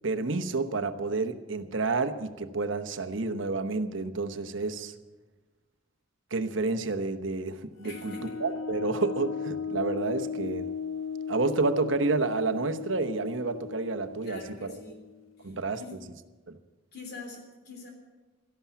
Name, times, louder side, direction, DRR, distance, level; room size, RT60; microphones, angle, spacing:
voice 1, 0.0-4.9 6.3-8.1 8.4-10.7 11.3-14.7 15.4-15.8 16.5-16.6, right 3 dB, 70° right, 9 dB, 1.0 m, -30 dB
sound 1, 7.8-15.2, left 6 dB, 85° left, 1.3 m, -36 dB
voice 2, 7.8-8.4 14.2-15.0 15.4-16.0 16.9-17.9, left 3 dB, 55° left, 2 dB, 3.2 m, -44 dB
13.5 x 11.5 x 8.3 m, 1.3 s
head